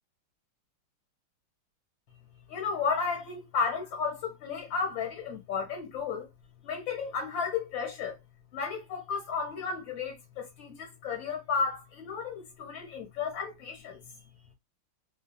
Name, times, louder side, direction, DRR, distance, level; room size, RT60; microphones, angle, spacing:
voice 1, 2.5-6.3 6.6-8.2 8.5-14.0, left 5 dB, 70° left, 2.0 m, -33 dB
3.8 x 2.3 x 2.3 m
omnidirectional pair, 2.1 m